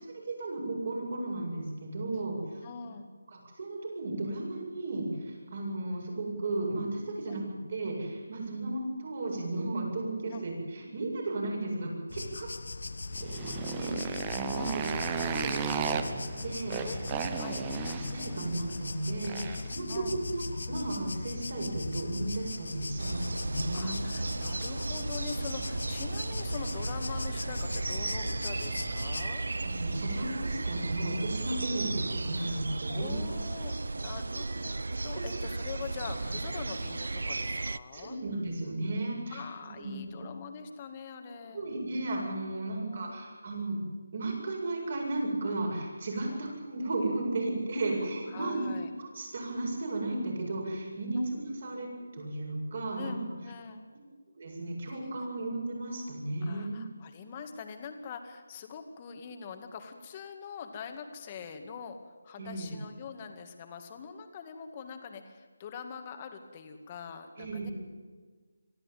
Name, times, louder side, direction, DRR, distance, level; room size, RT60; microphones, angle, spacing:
voice 1, 0.0-2.6 3.6-7.4 7.7-12.5 13.2-14.8 15.2-16.2 16.4-17.0 17.4-20.4 20.7-23.9 29.6-33.2 33.6-33.7 34.1-34.4 37.9-40.2 41.5-43.8 44.1-48.7 49.0-51.9 52.1-53.3 54.4-56.8 62.4-62.7 67.4-67.7, right 2 dB, 50° right, 0 dB, 7.9 m, -34 dB
voice 2, 2.6-3.1 7.3-7.4 10.3-10.4 14.6-14.8 16.8-17.0 17.4-17.6 19.9-20.2 23.7-29.4 32.4-32.6 32.9-34.8 35.0-38.2 39.3-41.6 42.7-43.1 46.3-46.5 48.3-48.9 51.2-51.3 53.0-53.2 53.4-53.8 55.0-55.1 56.4-62.0 62.2-67.7, left 6 dB, 25° left, 6 dB, 2.0 m, -43 dB
sound 1, 12.1-29.3, left 3 dB, 70° left, 1.1 m, -39 dB
Motorcycle, 13.1-19.8, right 7 dB, 20° right, 1.1 m, -35 dB
sound 2, 23.0-37.8, right 3 dB, 75° right, 0.7 m, -35 dB
23.5 x 14.5 x 9.2 m, 1.4 s
figure-of-eight pair, 165°, 0 cm